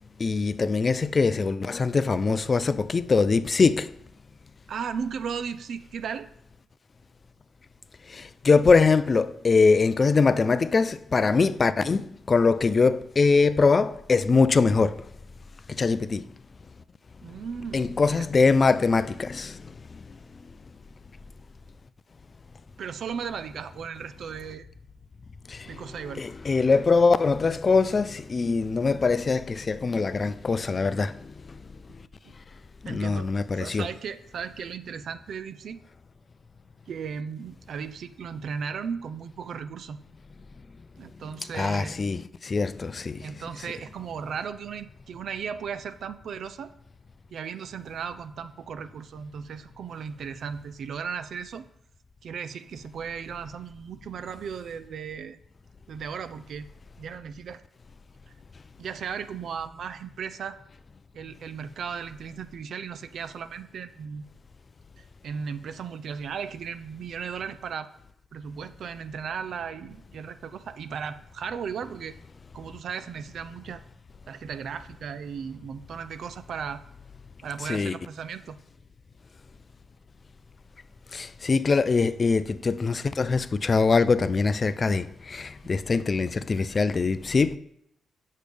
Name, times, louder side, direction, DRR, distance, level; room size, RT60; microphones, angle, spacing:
voice 1, 0.2-3.9 8.1-15.0 15.8-16.2 17.7-19.6 25.5-25.7 26.1-31.1 32.8-33.9 41.5-43.3 77.7-77.9 81.1-87.6, left 4 dB, 40° left, 0.4 m, -23 dB
voice 2, 4.7-6.3 17.2-18.3 22.8-24.7 25.7-26.2 32.3-32.4 32.9-35.8 36.9-40.0 41.0-42.0 43.2-46.7 47.3-51.7 52.2-55.4 55.9-56.7 57.0-57.6 58.8-60.6 61.1-64.2 65.0-67.9 68.3-72.2 72.5-73.8 74.3-76.8 77.4-78.6, right 6 dB, 70° right, 0.5 m, -36 dB
8.3 x 6.5 x 3.4 m
cardioid pair, 85°, 0 cm